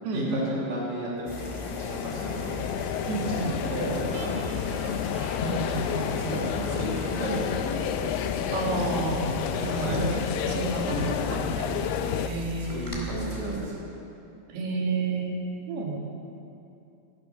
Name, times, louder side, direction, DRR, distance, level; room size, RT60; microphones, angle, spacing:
voice 1, 0.1-1.4 1.8-2.6 3.2-5.0 5.4-7.9 9.7-10.1 12.6-13.9, equal, 45° right, -7 dB, 5.2 m, -33 dB
sound 1, 1.2-13.7, right 2 dB, 35° left, 0.5 m, -39 dB
sound 2, 1.3-12.3, left 9 dB, 90° left, 2.0 m, -30 dB
voice 2, 3.1-3.6 5.4-6.1 8.5-9.3 9.6-11.9 12.2-13.0 14.5-15.3 15.7-16.0, right 4 dB, 80° right, -1 dB, 3.7 m, -31 dB
Guitar, 4.1-7.4, right 2 dB, 60° right, 1.7 m, -45 dB
16.5 x 9.9 x 6.2 m, 2.7 s
omnidirectional pair, 4.7 m